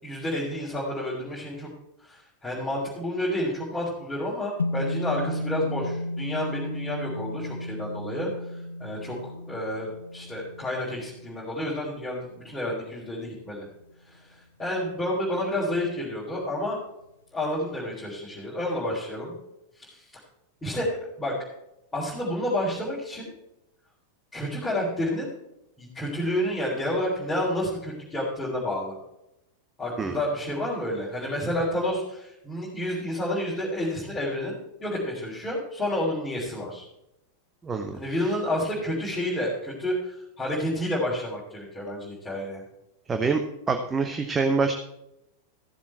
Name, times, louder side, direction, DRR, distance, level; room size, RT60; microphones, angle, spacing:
voice 1, 0.0-1.7 2.0-8.3 8.8-9.2 9.5-13.6 14.1-14.2 14.6-16.8 17.3-19.3 19.8-20.2 20.6-20.9 21.2-21.3 21.9-23.3 24.3-25.3 25.8-28.9 29.8-36.8 38.0-42.6, left 1 dB, 10° left, -8 dB, 3.7 m, -30 dB
sound 1, 4.6-13.0, left 1 dB, 75° left, 0.6 m, -34 dB
voice 2, 37.6-38.3 43.1-43.4 43.7-44.7, right 4 dB, 20° right, 6 dB, 0.9 m, -26 dB
14.5 x 7.3 x 4.5 m, 0.85 s
figure-of-eight pair, 90°, 0 cm